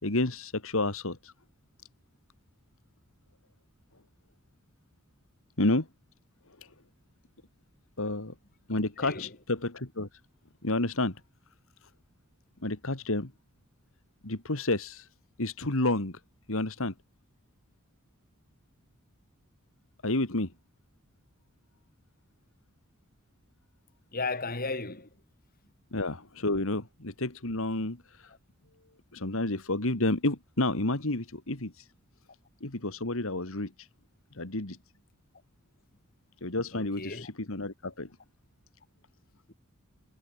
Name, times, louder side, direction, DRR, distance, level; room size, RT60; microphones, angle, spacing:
voice 1, 0.0-1.3 5.6-5.9 6.6-6.7 8.0-8.3 8.7-10.2 10.6-11.2 11.8-11.9 12.6-13.3 14.2-15.1 15.4-16.2 16.5-16.9 20.0-20.5 25.9-28.3 29.1-31.9 32.6-33.9 34.3-34.8 36.4-38.1, left 2 dB, 65° left, 2.5 m, -30 dB
voice 2, 9.0-9.3 24.1-25.2 36.7-37.3 39.5-39.6, left 3 dB, 45° left, 5.7 m, -35 dB
head